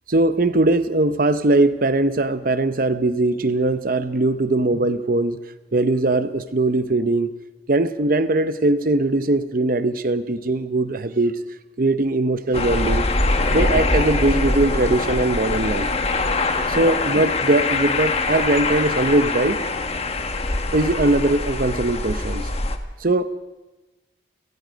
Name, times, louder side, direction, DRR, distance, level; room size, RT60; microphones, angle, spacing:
voice 1, 0.1-5.4 5.7-7.3 7.7-11.4 11.8-13.1 13.4-15.9 16.8-19.6 20.7-22.5 23.0-23.3, right 2 dB, 50° right, 12 dB, 0.8 m, -20 dB
sound 1, 12.5-22.8, left 3 dB, 35° left, 1.4 m, -23 dB
29.5 x 17.5 x 5.2 m, 1.1 s
head